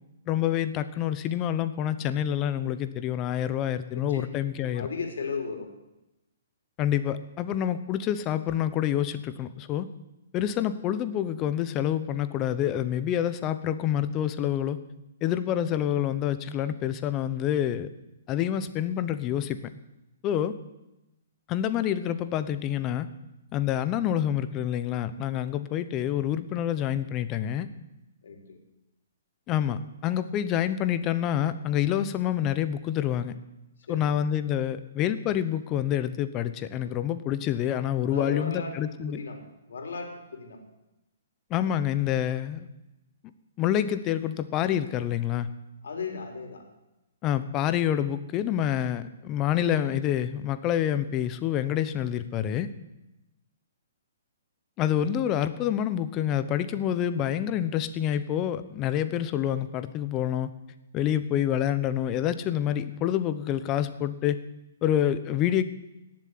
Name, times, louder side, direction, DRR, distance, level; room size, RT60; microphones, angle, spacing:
voice 1, 0.3-4.9 6.8-9.9 10.3-14.8 15.2-17.9 18.3-19.6 20.2-20.5 21.5-23.1 23.5-27.7 29.5-33.3 33.9-39.2 41.5-42.7 43.6-45.5 47.2-52.7 54.8-60.5 60.9-64.4 64.8-65.6, left 10 dB, 25° left, 12 dB, 0.9 m, -27 dB
voice 2, 4.6-5.7 28.2-28.6 33.9-34.2 38.0-39.4 39.7-40.6 45.8-46.7, left 5 dB, 75° left, 3 dB, 3.9 m, -36 dB
17.5 x 7.5 x 9.7 m, 0.95 s
hypercardioid pair, 155°, 0 cm